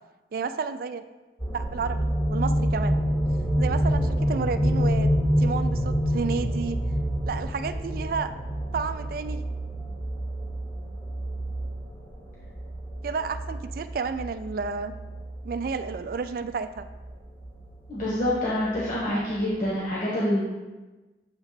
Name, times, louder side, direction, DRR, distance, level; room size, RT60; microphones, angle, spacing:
voice 1, 0.3-1.0 1.5-3.0 3.6-5.1 5.4-6.8 7.3-8.3 8.7-9.4 13.0-14.9 15.4-16.9, right 5 dB, 55° right, 11 dB, 0.3 m, -31 dB
sound 1, 1.4-19.2 19.7-19.8, equal, 10° left, 0.8 m, -28 dB
voice 2, 17.9-20.4, left 1 dB, 45° left, -7 dB, 1.3 m, -26 dB
7.3 x 3.2 x 4.9 m, 1.2 s
head